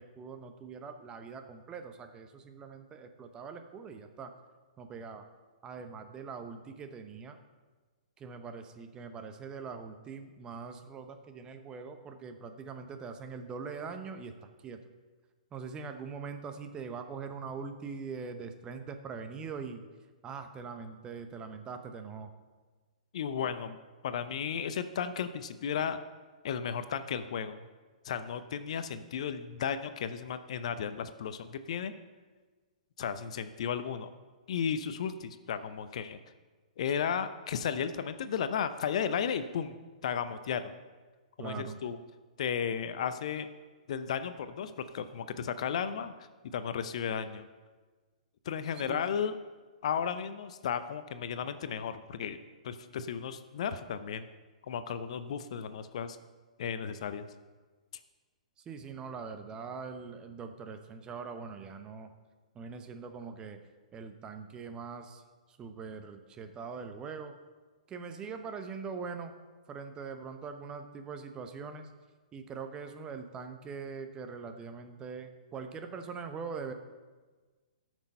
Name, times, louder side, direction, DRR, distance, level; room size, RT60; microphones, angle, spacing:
voice 1, 0.0-4.3 4.8-5.3 5.6-7.4 8.2-14.8 15.5-19.8 20.2-22.3 41.4-41.8 48.7-49.0 58.6-62.1 62.5-63.6 63.9-65.2 65.5-67.4 67.9-69.3 69.7-71.9 72.3-76.7, right 5 dB, 20° right, 7 dB, 0.9 m, -42 dB
voice 2, 23.1-23.8 24.0-26.0 26.4-27.6 28.0-31.9 33.0-34.1 34.5-36.2 36.8-39.8 40.0-40.7 41.4-42.0 42.4-43.5 43.9-46.1 46.4-47.5 48.5-49.3 49.8-52.4 52.6-54.3 54.7-56.2 56.6-57.3, left 7 dB, 55° left, 11 dB, 0.6 m, -34 dB
13.5 x 6.2 x 5.4 m, 1.3 s
figure-of-eight pair, 120°, 4 cm